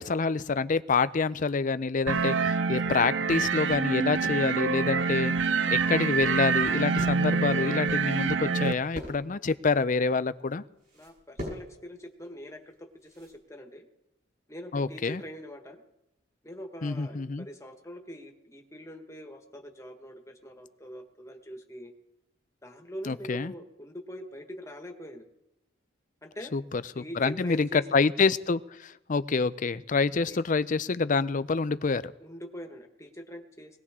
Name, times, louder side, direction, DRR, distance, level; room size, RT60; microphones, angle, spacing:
voice 1, 0.0-5.3 5.7-10.6 14.7-15.2 16.8-17.5 23.0-23.5 26.5-26.6 27.0-32.1, left 4 dB, 40° left, 14 dB, 0.5 m, -27 dB
sound 1, 2.1-8.7, right 5 dB, 65° right, 0.7 m, -26 dB
sound 2, 6.3-13.4, equal, 45° right, 6.2 m, -46 dB
voice 2, 10.9-13.8 14.5-15.8 16.4-21.9 22.6-25.3 26.2-26.5 27.0-27.8 30.3-30.4 32.2-33.8, equal, 15° left, 4 dB, 1.5 m, -43 dB
20.5 x 18.0 x 3.7 m, 0.89 s
head